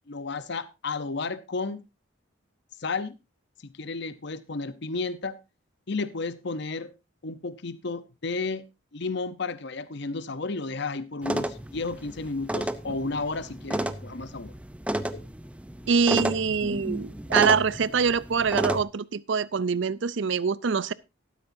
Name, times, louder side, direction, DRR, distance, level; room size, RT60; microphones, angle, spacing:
voice 1, 0.1-1.8 2.8-3.2 3.8-5.4 5.9-6.9 7.2-8.6 8.9-14.5 15.1-15.2, left 3 dB, 55° left, 0.8 m, -32 dB
sound 1, 11.2-18.8, right 1 dB, 5° right, 0.6 m, -32 dB
voice 2, 15.9-20.9, right 5 dB, 60° right, 0.5 m, -24 dB
13.5 x 12.5 x 2.7 m
head